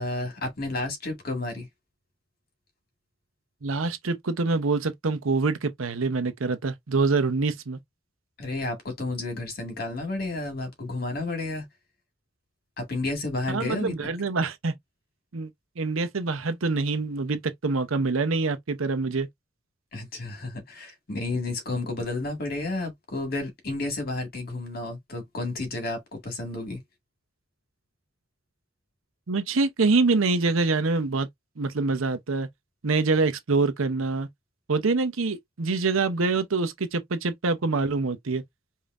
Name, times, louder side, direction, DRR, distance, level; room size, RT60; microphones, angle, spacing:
voice 1, 0.0-1.7 8.4-11.7 12.8-14.1 19.9-26.8, left 2 dB, 45° left, 1.8 m, -31 dB
voice 2, 3.6-7.8 13.5-14.7 15.3-15.5 15.8-19.3 29.3-31.3 31.6-32.5 32.8-34.3 34.7-38.4, right 3 dB, 80° right, 0.7 m, -25 dB
5.2 x 2.7 x 2.4 m
head